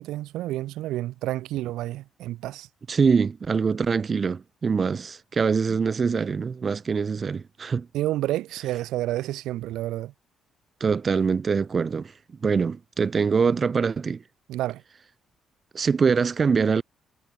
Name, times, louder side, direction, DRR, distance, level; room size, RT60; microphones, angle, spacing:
voice 1, 0.0-2.7 7.9-10.1 14.5-14.8, right 15 dB, 90° right, 2.8 m, -29 dB
voice 2, 2.9-7.9 10.8-12.1 12.4-14.2 15.7-16.8, right 5 dB, 40° right, 3.2 m, -24 dB
cardioid pair, 90°, 0 cm